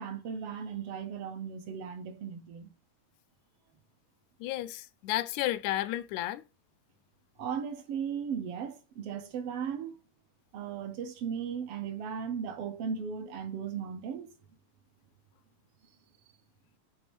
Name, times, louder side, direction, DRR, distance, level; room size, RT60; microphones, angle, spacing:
voice 1, 0.0-2.7 7.4-10.0 10.5-14.3, right 7 dB, 65° right, 1.6 m, -36 dB
voice 2, 4.4-6.4, left 14 dB, 85° left, 2.0 m, -32 dB
8.8 x 3.4 x 6.2 m
omnidirectional pair, 3.3 m